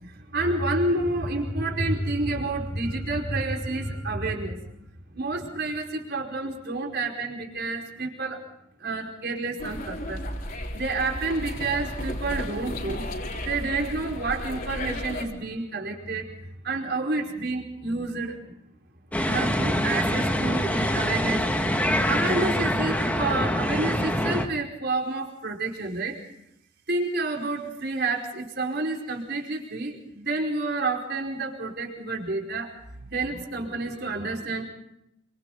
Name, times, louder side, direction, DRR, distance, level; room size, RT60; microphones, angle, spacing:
voice 1, 0.0-4.6 5.1-8.4 8.8-10.2 10.7-13.0 13.4-16.3 16.6-18.6 19.2-21.5 22.0-26.2 26.9-32.7 33.0-34.6, right 3 dB, 55° right, 0 dB, 5.0 m, -29 dB
sound 1, 9.6-15.2, left 1 dB, 45° left, 4.4 m, -34 dB
sound 2, 19.1-24.4, equal, 5° left, 2.1 m, -25 dB
29.5 x 26.0 x 4.0 m, 0.81 s
head